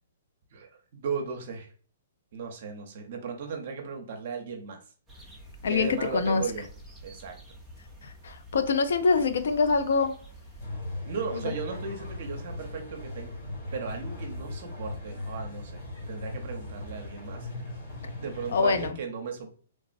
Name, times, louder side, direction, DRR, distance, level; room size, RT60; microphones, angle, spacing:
voice 1, 0.5-1.7 2.3-4.8 5.7-6.7 7.0-7.4 11.1-13.3 13.7-15.8 16.1-17.7 18.2-19.5, right 5 dB, 45° right, 0.6 m, -36 dB
sound 1, 5.1-10.7, right 1 dB, ahead, 0.4 m, -48 dB
voice 2, 5.6-6.4 8.0-10.2 11.4-11.5 18.5-19.0, left 4 dB, 70° left, 0.4 m, -25 dB
sound 2, 10.6-18.9, left 2 dB, 40° left, 1.2 m, -38 dB
3.3 x 2.0 x 2.5 m
hypercardioid pair, 170°, 0 cm